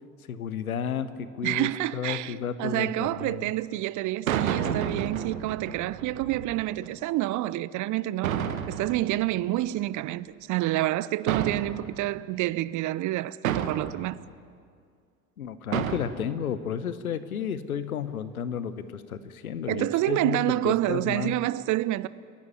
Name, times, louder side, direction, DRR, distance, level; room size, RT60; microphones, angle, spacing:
voice 1, 0.3-3.5 15.4-21.4, left 8 dB, 80° left, 1.0 m, -32 dB
voice 2, 1.4-14.2 19.7-22.1, right 16 dB, 45° right, 0.7 m, -28 dB
sound 1, 3.0-3.3 4.3-6.9 8.2-10.0 11.3-12.2 13.4-14.1 15.7-16.0, right 9 dB, 75° right, 1.2 m, -31 dB
29.0 x 11.5 x 9.6 m
figure-of-eight pair, 60°, 42 cm